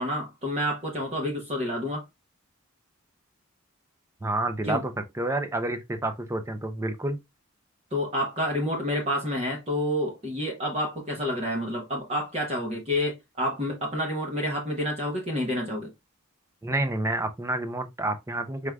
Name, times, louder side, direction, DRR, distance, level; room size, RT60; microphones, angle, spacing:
voice 1, 0.0-2.0 4.6-4.8 7.9-15.9, equal, 30° right, 0.9 m, -29 dB
voice 2, 4.2-4.9 5.2-7.2 16.6-18.7, right 2 dB, 15° right, 0.5 m, -29 dB
4.8 x 3.5 x 2.2 m
head